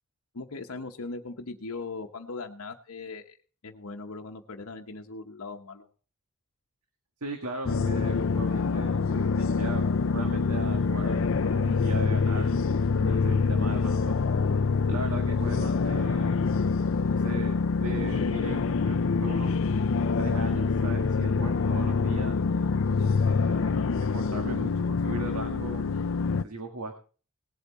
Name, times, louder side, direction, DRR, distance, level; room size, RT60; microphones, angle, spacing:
voice 1, 0.3-3.4 3.6-5.9 23.0-23.2, left 3 dB, 75° left, 3 dB, 1.0 m, -39 dB
voice 2, 7.2-9.8 10.1-12.5 13.0-14.1 14.9-16.4 17.1-19.5 20.2-22.4 23.3-23.8 24.1-25.9 26.4-27.0, right 2 dB, 85° right, 4 dB, 1.7 m, -38 dB
sound 1, 7.6-26.4, left 4 dB, 60° left, 0.5 m, -26 dB
18.5 x 8.3 x 4.1 m, 0.38 s
head